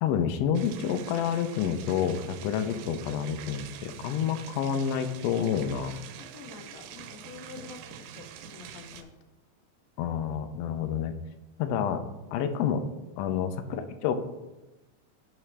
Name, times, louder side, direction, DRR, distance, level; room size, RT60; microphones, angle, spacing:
voice 1, 0.0-6.0 10.0-11.2 11.6-12.0 12.3-12.8 13.2-14.1, left 8 dB, 90° left, 8 dB, 1.4 m, -29 dB
sound 1, 0.5-9.0, right 10 dB, 85° right, 2.0 m, -45 dB
voice 2, 6.2-9.1 11.7-12.0, left 7 dB, 75° left, 6 dB, 1.8 m, -47 dB
10.0 x 4.9 x 3.3 m, 1.1 s
omnidirectional pair, 3.5 m